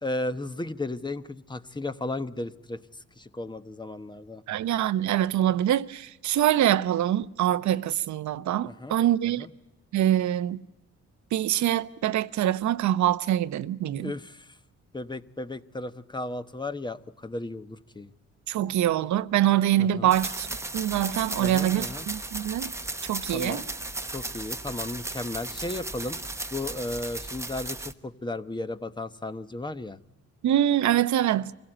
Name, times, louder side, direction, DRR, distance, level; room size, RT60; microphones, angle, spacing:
voice 1, 0.0-2.8 3.2-4.4 8.6-9.0 9.4-9.5 14.0-14.6 14.9-18.1 19.8-20.1 21.4-22.0 23.3-23.6 24.1-26.2 26.5-30.0, left 2 dB, 15° left, 1.0 m, -34 dB
voice 2, 4.5-9.5 9.9-10.6 11.3-14.1 18.5-20.5 20.7-22.7 23.0-23.6 30.4-31.5, right 12 dB, 70° right, 0.9 m, -24 dB
sound 1, 20.1-27.9, right 2 dB, 10° right, 1.0 m, -35 dB
24.5 x 17.0 x 8.8 m
cardioid pair, 90°, 30 cm